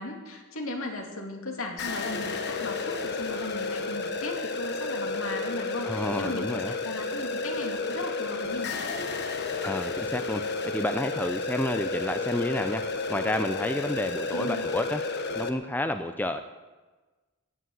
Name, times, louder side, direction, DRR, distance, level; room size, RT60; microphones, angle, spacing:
voice 1, 0.0-8.8 14.3-14.6, left 2 dB, 65° left, 2 dB, 2.7 m, -37 dB
sound 1, 1.8-15.5, left 3 dB, 50° left, 1.2 m, -32 dB
voice 2, 5.8-6.8 9.6-15.0 15.3-16.4, left 1 dB, 10° left, 8 dB, 0.5 m, -30 dB
15.5 x 10.0 x 8.0 m, 1.3 s
head